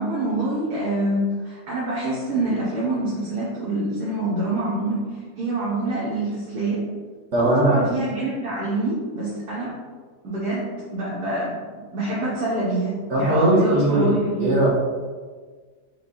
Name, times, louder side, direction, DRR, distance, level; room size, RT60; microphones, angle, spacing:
voice 1, 0.0-5.0 5.4-6.8 7.4-9.8 10.2-11.6 11.9-14.6, right 2 dB, 75° right, -9 dB, 1.7 m, -26 dB
voice 2, 7.3-7.8 13.1-14.1 14.4-14.7, right 1 dB, 50° right, -7 dB, 1.1 m, -19 dB
5.4 x 2.3 x 3.9 m, 1.5 s
omnidirectional pair, 1.7 m